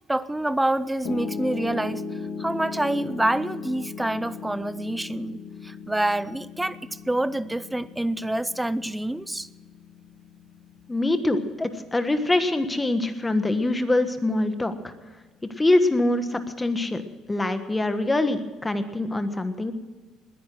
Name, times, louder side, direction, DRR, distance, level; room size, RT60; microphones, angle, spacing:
voice 1, 0.1-9.5, right 1 dB, 5° right, 17 dB, 0.5 m, -27 dB
Piano, 1.0-13.2, left 5 dB, 55° left, 1.5 m, -38 dB
voice 2, 10.9-14.9 15.6-17.0 17.3-19.7, left 2 dB, 15° left, 9 dB, 1.4 m, -24 dB
20.0 x 10.0 x 6.2 m, 1.3 s
cardioid pair, 110°, 0 cm